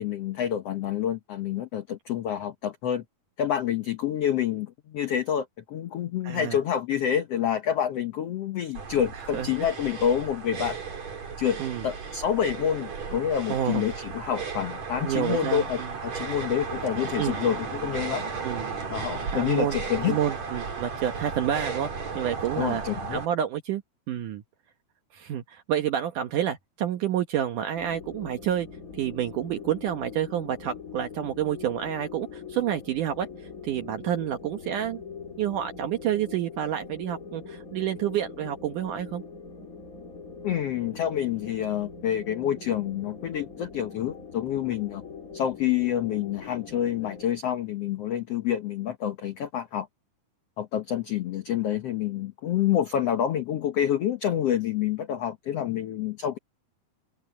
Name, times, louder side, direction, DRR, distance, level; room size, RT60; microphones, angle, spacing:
voice 1, 0.0-3.0 3.4-10.8 11.4-18.2 18.9-20.2 22.6-23.2 40.4-45.0 45.3-49.9 50.6-56.4, left 10 dB, 80° left, 1.4 m, -28 dB
voice 2, 6.2-6.6 9.2-9.5 11.6-11.9 13.5-13.8 15.0-15.9 17.2-17.4 18.4-18.8 19.3-19.8 20.0-21.9 22.2-22.8 23.1-23.8 24.1-24.4 25.1-28.7 28.9-33.3 33.6-35.0 35.4-39.2, right 10 dB, 65° right, 2.4 m, -29 dB
Heavy breathing, 8.7-23.3, right 5 dB, 45° right, 4.8 m, -35 dB
sound 1, 27.8-47.3, left 5 dB, 25° left, 2.4 m, -42 dB
open air
omnidirectional pair, 4.3 m